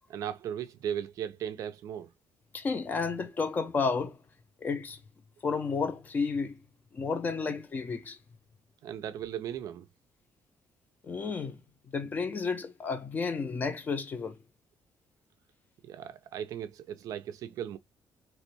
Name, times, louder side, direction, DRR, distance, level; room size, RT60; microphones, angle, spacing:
voice 1, 0.1-2.1 7.5-7.6 8.8-9.9 15.8-17.8, right 9 dB, 55° right, 0.4 m, -37 dB
voice 2, 2.5-4.2 4.6-5.0 5.4-6.6 6.9-8.2 11.0-11.6 11.9-14.4, left 4 dB, 25° left, 0.4 m, -31 dB
2.9 x 2.2 x 3.0 m
cardioid pair, 170°, 7 cm